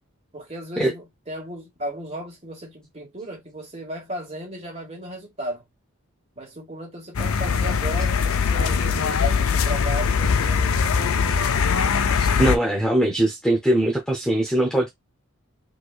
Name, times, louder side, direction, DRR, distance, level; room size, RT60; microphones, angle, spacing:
voice 1, 0.3-5.7 6.4-11.5, right 1 dB, 30° right, 1.9 m, -35 dB
sound 1, 7.1-12.6, left 6 dB, 70° left, 0.5 m, -21 dB
voice 2, 12.2-14.9, right 1 dB, 5° left, 0.7 m, -21 dB
4.3 x 3.0 x 2.4 m
head